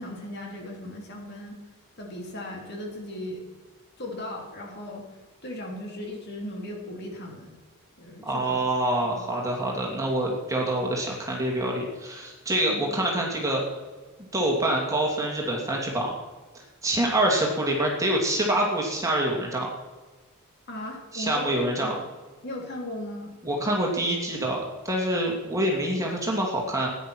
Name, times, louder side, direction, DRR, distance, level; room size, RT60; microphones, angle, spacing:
voice 1, 0.0-1.6 2.0-3.4 4.0-5.0 5.4-7.6 8.0-8.6 9.0-9.2 12.7-12.8 20.7-22.0 22.4-23.4, left 1 dB, 50° left, 0 dB, 3.2 m, -37 dB
voice 2, 8.2-13.6 14.3-16.1 16.8-19.7 21.1-22.0 23.4-26.9, right 1 dB, 15° right, -1 dB, 2.6 m, -26 dB
16.0 x 10.0 x 6.3 m, 1.3 s
head